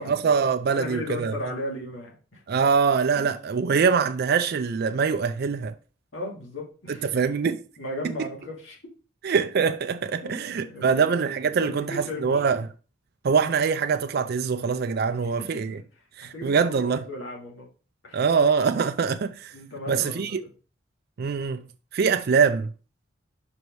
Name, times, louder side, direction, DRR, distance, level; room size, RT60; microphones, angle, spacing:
voice 1, 0.0-1.5 2.5-5.7 6.9-7.6 8.2-8.3 9.2-12.7 13.2-15.8 16.2-17.1 18.1-19.5 19.9-20.4 21.2-21.7 21.9-22.7, right 5 dB, 55° right, 0.4 m, -24 dB
voice 2, 0.7-2.4 3.1-3.3 6.1-7.1 7.8-8.8 10.2-11.1 11.6-12.4 15.1-15.8 16.3-17.7 18.0-18.2 19.5-20.3, left 1 dB, 80° left, 2.4 m, -36 dB
5.2 x 4.8 x 4.7 m
head